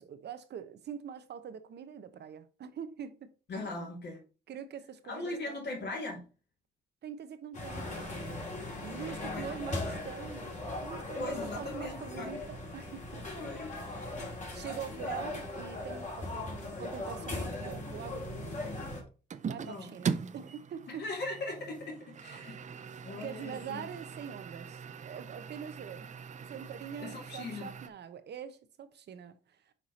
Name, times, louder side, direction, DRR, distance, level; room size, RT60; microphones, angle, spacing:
voice 1, 0.0-3.3 3.8-3.9 4.5-5.8 7.0-8.5 8.8-13.3 14.5-18.6 19.4-21.0 22.4-22.7 23.2-29.7, right 8 dB, 60° right, 0.9 m, -44 dB
voice 2, 3.5-4.2 5.0-6.3 8.6-10.0 11.2-12.3 13.2-13.9 15.0-15.1 19.6-19.9 20.9-23.8 27.0-27.7, left 2 dB, 60° left, 3.1 m, -40 dB
sound 1, 7.5-19.0, left 2 dB, 40° left, 2.6 m, -39 dB
sound 2, 19.3-27.9, right 6 dB, 40° right, 0.6 m, -41 dB
5.9 x 4.7 x 4.2 m
cardioid pair, 90°, 20 cm